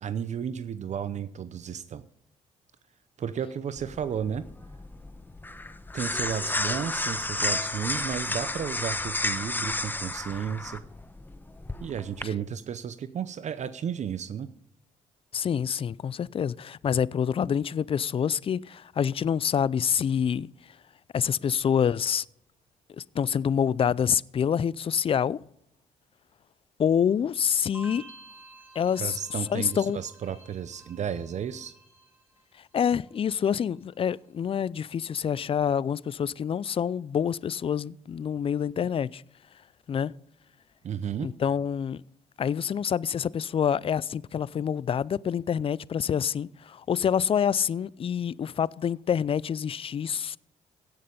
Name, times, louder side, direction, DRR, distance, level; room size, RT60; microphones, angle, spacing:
voice 1, 0.0-2.0 3.2-4.4 5.9-10.8 11.8-14.5 29.0-31.7 40.8-41.3, right 8 dB, 55° right, 0.7 m, -33 dB
sound 1, 3.8-12.2, left 2 dB, 15° left, 0.9 m, -32 dB
voice 2, 15.3-20.5 21.1-22.2 23.0-25.4 26.8-28.1 28.8-29.2 29.5-30.0 32.7-39.2 39.9-40.1 41.2-42.0 42.4-50.4, left 8 dB, 40° left, 0.4 m, -27 dB
sound 2, 27.7-32.8 33.1-33.7, right 3 dB, 15° right, 5.0 m, -51 dB
17.0 x 6.6 x 5.4 m
supercardioid pair, 65°, 14 cm